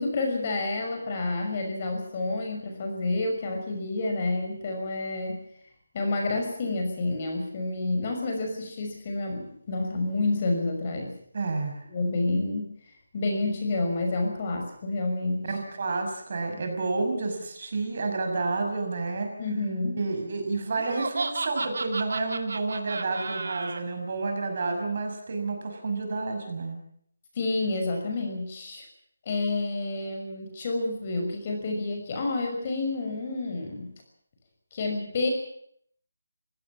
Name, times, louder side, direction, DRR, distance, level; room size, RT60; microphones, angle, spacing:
voice 1, 0.0-5.4 5.9-11.1 11.9-12.7 13.1-15.5 19.4-20.0 27.4-28.8 29.3-33.9 34.7-35.3, left 2 dB, 30° left, 3 dB, 5.9 m, -29 dB
voice 2, 11.3-11.8 15.5-19.3 19.9-26.8, right 3 dB, 45° right, 5 dB, 6.2 m, -30 dB
Laughter, 20.8-23.8, right 3 dB, 70° right, 2.4 m, -33 dB
24.5 x 17.0 x 7.4 m, 0.64 s
hypercardioid pair, 170°, 0 cm